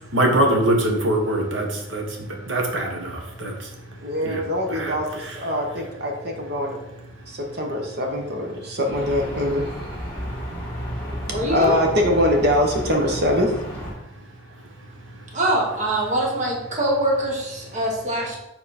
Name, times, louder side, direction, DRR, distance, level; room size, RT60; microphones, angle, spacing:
voice 1, 0.1-3.5 4.2-4.4 4.7-4.9 5.2-5.4, right 1 dB, 70° right, 2 dB, 1.4 m, -23 dB
voice 2, 4.0-6.8 7.2-9.9 11.5-13.5, left 1 dB, 55° right, 1 dB, 1.2 m, -23 dB
sound 1, 8.9-13.9, equal, 10° left, 2.1 m, -32 dB
voice 3, 11.3-11.8 15.3-18.4, right 1 dB, 35° right, -2 dB, 1.5 m, -23 dB
6.9 x 4.1 x 4.3 m, 0.90 s
head